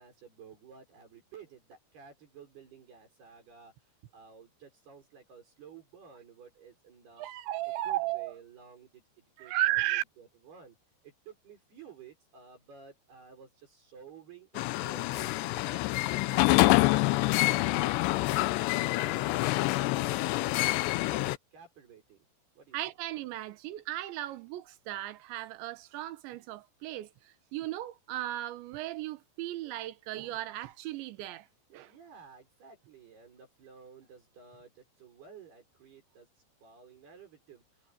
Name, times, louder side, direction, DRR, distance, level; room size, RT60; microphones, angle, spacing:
voice 1, 0.0-7.3 7.6-10.8 11.0-15.8 16.2-22.3 22.5-22.8 31.7-37.9, right 6 dB, 60° right, 8.4 m, -54 dB
voice 2, 7.2-8.3 9.4-10.0 22.7-27.1 27.5-31.5 31.7-31.9, right 15 dB, 85° right, 3.5 m, -35 dB
sound 1, 14.6-21.4, left 20 dB, 85° left, 2.8 m, -26 dB
omnidirectional pair, 5.0 m